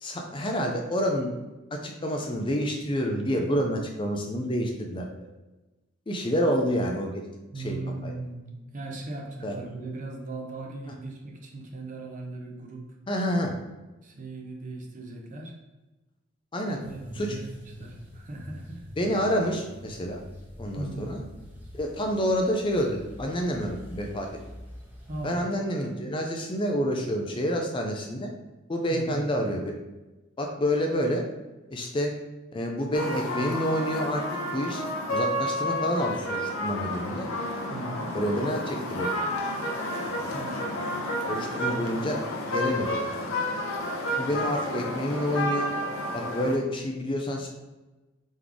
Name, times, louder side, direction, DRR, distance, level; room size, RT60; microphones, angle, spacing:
voice 1, 0.0-1.3 1.7-5.1 6.1-7.1 7.6-7.8 8.0-8.1 9.4-9.5 13.1-13.5 16.5-16.8 17.1-17.4 19.0-20.2 20.6-21.2 21.7-24.3 25.2-28.3 28.7-29.8 30.4-31.2 31.7-32.1 32.5-34.2 34.5-34.8 35.1-37.3 38.1-39.1 40.2-40.4 41.3-42.2 42.5-43.0 44.2-45.7 46.1-47.5, equal, 25° left, 2 dB, 0.4 m, -28 dB
voice 2, 7.5-12.9 14.0-15.6 16.7-17.5 17.8-18.9 20.7-21.1 25.1-25.4 28.9-29.2 37.7-38.2 40.3-41.0 44.1-44.4, right 2 dB, 40° right, 0 dB, 0.7 m, -38 dB
sound 1, 16.8-25.3, left 1 dB, 10° right, 0.9 m, -45 dB
sound 2, 32.9-46.6, left 1 dB, 85° left, 0.8 m, -31 dB
3.9 x 3.1 x 3.5 m, 1.1 s
head